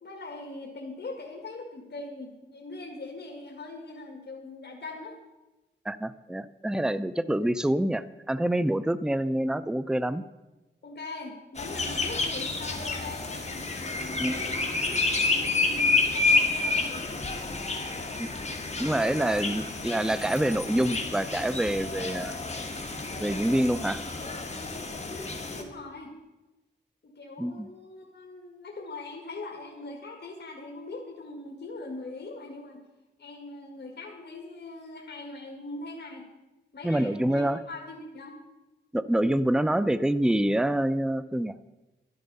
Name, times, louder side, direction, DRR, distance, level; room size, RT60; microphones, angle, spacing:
voice 1, 0.0-5.2 9.1-9.2 10.8-17.3 18.7-19.3 25.5-26.2 27.0-32.8 33.2-36.2 36.7-38.4, left 2 dB, 65° left, 1 dB, 1.8 m, -41 dB
voice 2, 5.9-10.2 14.2-14.3 18.2-18.3 18.8-22.4 23.2-24.0 27.4-27.7 36.8-37.6 38.9-41.5, right 1 dB, 5° right, 15 dB, 0.5 m, -26 dB
sound 1, 11.6-25.6, left 3 dB, 35° left, 1.7 m, -29 dB
12.0 x 10.5 x 5.4 m, 1.1 s
wide cardioid pair, 75°, 19 cm